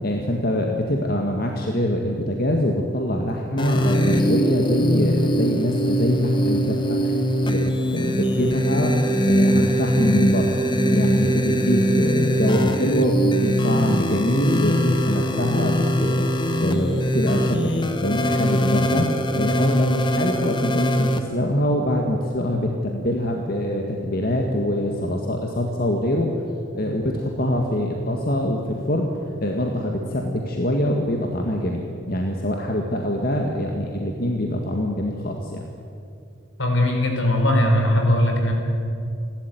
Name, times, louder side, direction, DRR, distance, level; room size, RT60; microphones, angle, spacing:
voice 1, 0.0-7.1 7.4-7.6 7.9-8.9 9.2-10.6 10.9-16.3 16.6-19.1 19.3-26.3 26.7-29.1 29.4-31.8 32.1-35.6, left 1 dB, 45° left, 1 dB, 1.8 m, -24 dB
sound 1, 3.6-21.2, equal, 25° left, 1.3 m, -21 dB
voice 2, 36.6-38.5, left 1 dB, 70° left, 3 dB, 4.7 m, -19 dB
29.0 x 13.0 x 9.3 m, 2.6 s
head